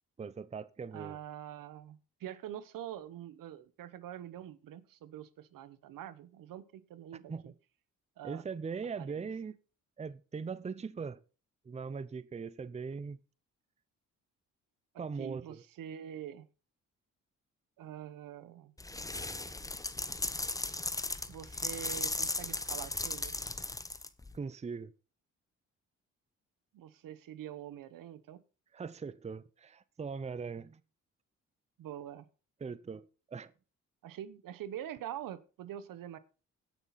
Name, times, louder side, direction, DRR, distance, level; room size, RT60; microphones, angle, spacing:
voice 1, 0.2-1.2 7.3-7.5 8.2-9.6 10.0-11.2 11.7-13.2 15.0-15.6 24.3-24.9 28.7-30.8 32.6-33.5, right 5 dB, 20° right, 0.6 m, -40 dB
voice 2, 0.9-7.5 8.2-8.4 9.0-9.3 15.2-16.5 17.8-18.7 21.3-23.3 26.7-28.4 31.8-32.2 34.0-36.2, right 11 dB, 80° right, 0.9 m, -45 dB
sound 1, 18.8-24.4, left 2 dB, 10° left, 0.8 m, -37 dB
17.0 x 6.0 x 4.1 m
cardioid pair, 75°, 33 cm